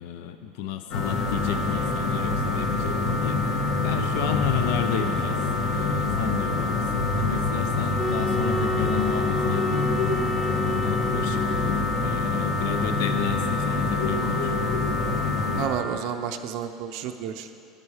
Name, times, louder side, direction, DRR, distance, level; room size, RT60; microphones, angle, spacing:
voice 1, 0.0-10.2 10.5-14.7, left 8 dB, 70° left, 8 dB, 0.6 m, -32 dB
sound 1, 0.9-15.7, left 3 dB, 55° left, 1.5 m, -25 dB
sound 2, 7.9-11.9, equal, 10° right, 0.6 m, -31 dB
voice 2, 15.6-17.5, right 8 dB, 55° right, 6 dB, 0.6 m, -31 dB
11.5 x 11.0 x 5.0 m, 2.5 s
cardioid pair, 165°, 0 cm